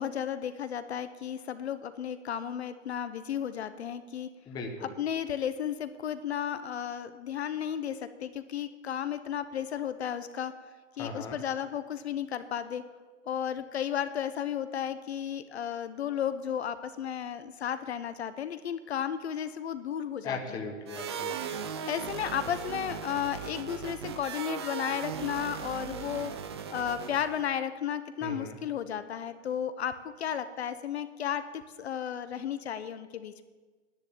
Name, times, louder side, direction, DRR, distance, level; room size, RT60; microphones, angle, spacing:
voice 1, 0.0-4.3 4.8-10.5 11.0-12.8 13.3-20.6 21.8-26.3 26.7-33.4, left 9 dB, 55° left, 11 dB, 0.9 m, -34 dB
voice 2, 4.5-4.9 11.0-11.4 20.2-21.6 28.2-28.6, left 3 dB, 10° left, 3 dB, 1.0 m, -38 dB
sound 1, 20.9-27.4, right 7 dB, 20° right, 0.5 m, -38 dB
10.5 x 9.2 x 8.8 m, 1.4 s
hypercardioid pair, 160°, 39 cm